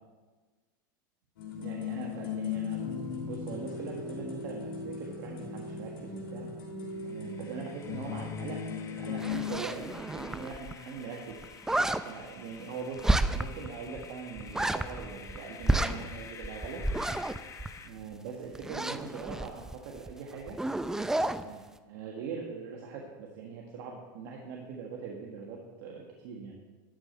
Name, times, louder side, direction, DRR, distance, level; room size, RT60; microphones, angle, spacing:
sound 1, 1.4-9.6, left 6 dB, 85° left, 3.0 m, -37 dB
voice 1, 1.6-6.5 7.0-11.4 11.7-16.8 17.8-20.6 21.3-26.6, right 5 dB, 60° right, 0 dB, 1.6 m, -42 dB
sound 2, 6.9-17.9, left 6 dB, 25° left, 0.9 m, -50 dB
sound 3, 9.2-10.7 11.0-11.1 11.3-12.0 13.0-13.7 14.0-14.1 14.4-15.4 15.6-18.1 18.5-20.1 20.4-21.4, right 2 dB, 5° right, 0.4 m, -30 dB
13.0 x 4.9 x 7.9 m, 1.3 s
supercardioid pair, 125°, 12 cm